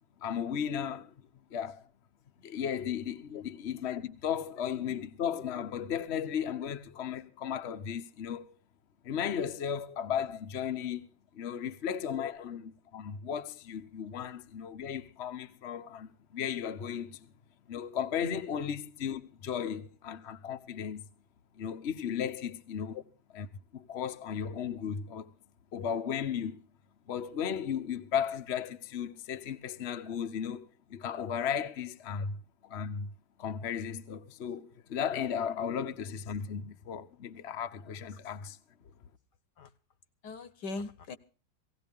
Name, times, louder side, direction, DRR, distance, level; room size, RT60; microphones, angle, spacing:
voice 1, 0.2-1.1 1.5-1.8 2.4-8.5 9.0-11.1 11.3-17.3 17.7-21.0 21.6-23.0 23.3-23.5 23.7-25.3 25.7-26.6 27.1-33.1 33.4-38.6, left 8 dB, 45° left, 1.1 m, -35 dB
voice 2, 40.2-41.2, left 4 dB, 70° left, 1.7 m, -40 dB
18.0 x 17.5 x 3.6 m
omnidirectional pair, 1.9 m